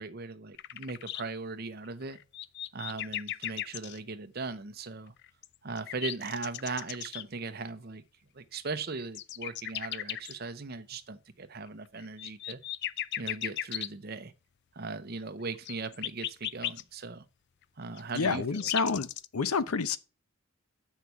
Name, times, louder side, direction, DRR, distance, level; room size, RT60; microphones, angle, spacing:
voice 1, 0.0-2.2 2.7-5.1 5.6-8.0 8.3-12.6 13.2-14.3 14.7-17.2 17.8-18.7, right 3 dB, 45° right, 0.8 m, -38 dB
sound 1, 0.6-1.2 2.0-4.0 5.2-7.2 8.7-10.3 11.9-13.9 15.5-16.8 18.0-19.3, left 12 dB, 50° left, 0.4 m, -36 dB
voice 2, 18.2-19.1 19.3-20.0, left 5 dB, 90° left, 0.7 m, -28 dB
8.1 x 5.8 x 4.6 m
head